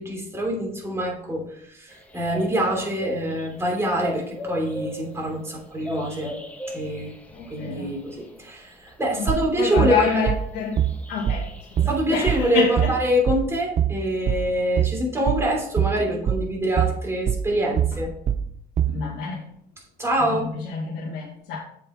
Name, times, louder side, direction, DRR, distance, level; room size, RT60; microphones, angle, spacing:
voice 1, 0.0-6.3 6.7-7.1 7.5-10.2 11.9-18.1 20.0-20.5, equal, 15° right, -2 dB, 2.9 m, -25 dB
sound 1, 1.9-10.1 10.7-12.8, left 1 dB, 10° left, 1.1 m, -38 dB
voice 2, 7.3-7.9 9.2-10.8 11.1-12.9 18.9-19.5 20.5-21.6, left 5 dB, 80° left, -5 dB, 1.9 m, -27 dB
sound 2, 9.3-19.1, right 9 dB, 45° right, 0.6 m, -24 dB
7.4 x 5.4 x 4.3 m, 0.66 s
cardioid pair, 110°, 17 cm